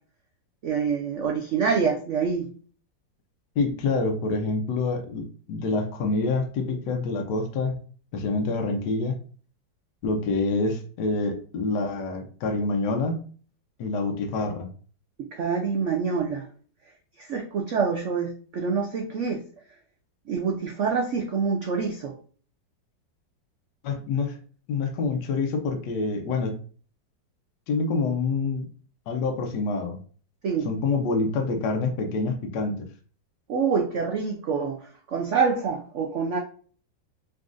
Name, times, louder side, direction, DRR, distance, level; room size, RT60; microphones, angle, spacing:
voice 1, 0.6-2.5 15.3-16.5 17.2-19.4 20.3-22.2 30.4-30.7 33.5-34.8 35.1-36.4, right 5 dB, 90° right, 2 dB, 0.6 m, -26 dB
voice 2, 3.6-7.8 8.1-9.2 10.0-13.2 13.8-14.7 23.8-24.4 24.7-26.5 27.7-28.7 29.1-30.0 30.6-32.9, left 3 dB, 70° left, 4 dB, 1.3 m, -26 dB
4.1 x 3.6 x 2.5 m, 0.42 s
omnidirectional pair, 2.0 m